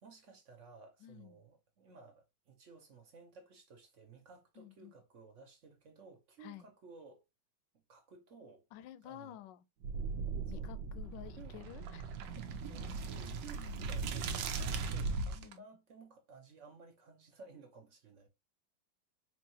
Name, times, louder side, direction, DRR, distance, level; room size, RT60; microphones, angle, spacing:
voice 1, 0.0-7.2 7.9-8.6 9.0-9.4 10.5-10.7 11.4-11.6 12.5-18.3, right 4 dB, 55° right, 0.9 m, -56 dB
voice 2, 1.0-1.4 4.6-4.9 6.4-6.7 8.7-9.7 10.5-12.1 13.5-14.0 15.4-15.6, left 12 dB, 75° left, 1.1 m, -51 dB
sound 1, 9.8-15.5, right 4 dB, 75° right, 1.4 m, -38 dB
4.5 x 3.0 x 2.7 m
omnidirectional pair, 2.2 m